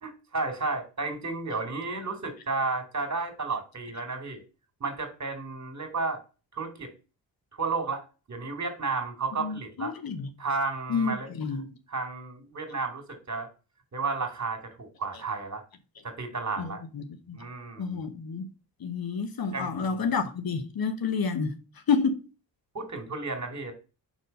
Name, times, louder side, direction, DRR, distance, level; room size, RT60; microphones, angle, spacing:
voice 1, 0.0-4.4 4.8-6.2 6.5-6.9 7.5-8.0 8.3-9.9 10.4-11.3 11.9-13.5 13.9-15.6 16.0-16.8 17.3-18.0 19.5-20.1 22.7-23.7, right 4 dB, 40° right, 2.4 m, -32 dB
voice 2, 9.4-10.3 10.9-11.7 16.6-17.4 17.8-18.5 18.8-21.6 21.9-22.2, left 5 dB, 55° left, 1.1 m, -29 dB
5.0 x 4.5 x 5.3 m
cardioid pair, 60°, 42 cm